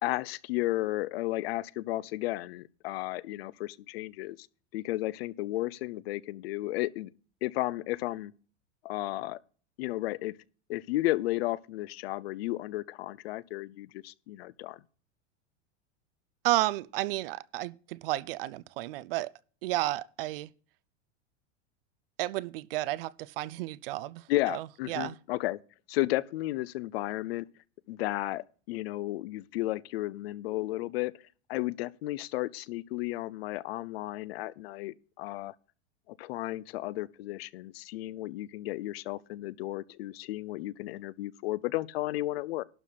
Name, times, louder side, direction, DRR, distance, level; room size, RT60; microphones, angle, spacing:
voice 1, 0.0-4.5 4.7-7.1 7.4-8.3 8.8-9.4 9.8-10.4 10.7-14.8 24.3-25.6 25.9-27.5 27.9-31.1 31.5-35.5 36.1-42.6, left 17 dB, 60° left, 0.6 m, -33 dB
voice 2, 16.4-19.3 19.6-20.5 22.2-25.2, right 17 dB, 55° right, 0.6 m, -32 dB
12.0 x 4.0 x 7.5 m
supercardioid pair, 165°, 35 cm